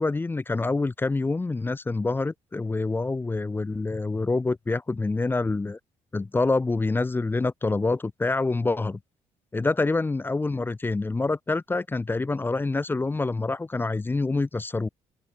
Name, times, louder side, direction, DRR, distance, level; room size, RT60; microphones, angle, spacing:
voice 1, 0.0-5.8 6.1-9.0 9.5-14.9, left 3 dB, 10° left, 0.4 m, -26 dB
open air
hypercardioid pair, 50°, 17 cm